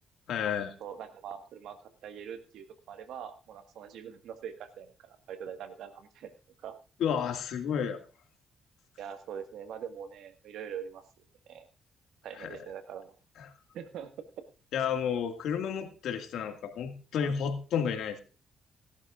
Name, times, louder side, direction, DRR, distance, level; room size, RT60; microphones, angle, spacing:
voice 1, 0.3-0.7 7.0-8.0 12.4-12.5 14.7-18.2, left 7 dB, 75° left, 5 dB, 2.1 m, -31 dB
voice 2, 0.8-6.3 6.6-6.7 9.0-11.0 11.5-11.7 12.2-13.2 13.7-14.1, right 8 dB, 80° right, 8 dB, 1.7 m, -43 dB
17.5 x 11.5 x 2.5 m, 0.34 s
cardioid pair, 90°, 0 cm